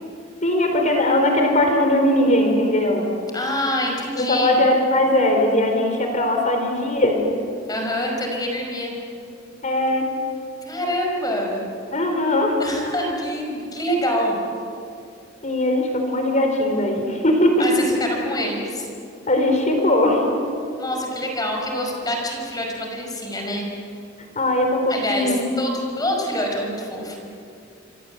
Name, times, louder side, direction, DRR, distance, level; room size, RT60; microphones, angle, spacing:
voice 1, 0.4-3.1 4.1-7.2 9.6-10.1 11.9-12.6 15.4-17.7 19.3-20.2 24.3-25.5, left 1 dB, 40° left, 3 dB, 4.3 m, -20 dB
voice 2, 3.3-4.6 7.7-8.9 10.7-11.7 12.6-14.4 17.6-18.9 20.8-23.7 24.9-27.2, left 1 dB, 20° left, 1 dB, 5.4 m, -26 dB
27.0 x 26.5 x 8.1 m, 2.5 s
head